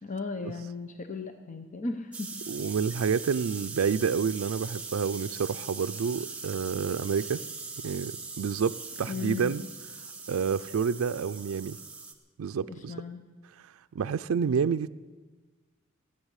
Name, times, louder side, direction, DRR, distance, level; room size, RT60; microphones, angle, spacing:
voice 1, 0.0-2.4 9.1-9.5 12.7-13.2, left 4 dB, 35° left, 7 dB, 0.8 m, -36 dB
sound 1, 2.1-12.1, right 4 dB, 5° right, 1.2 m, -41 dB
voice 2, 2.5-7.4 7.8-9.6 10.3-11.8 12.4-12.9 13.6-14.9, right 6 dB, 90° right, 10 dB, 0.4 m, -29 dB
16.0 x 9.8 x 8.1 m, 1.3 s
head